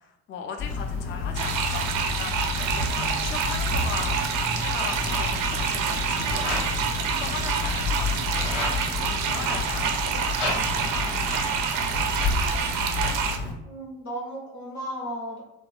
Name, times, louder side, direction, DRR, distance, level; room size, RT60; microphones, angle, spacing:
voice 1, 0.0-8.6 9.0-11.9, left 6 dB, 30° left, 4 dB, 0.4 m, -39 dB
sound 1, 0.6-13.5, left 4 dB, 60° left, 1.1 m, -30 dB
sound 2, 1.3-13.4, right 7 dB, 50° right, 0.4 m, -27 dB
voice 2, 13.6-15.4, equal, 80° left, -5 dB, 1.0 m, -35 dB
3.3 x 2.1 x 2.3 m, 0.88 s
figure-of-eight pair, 50°, 43 cm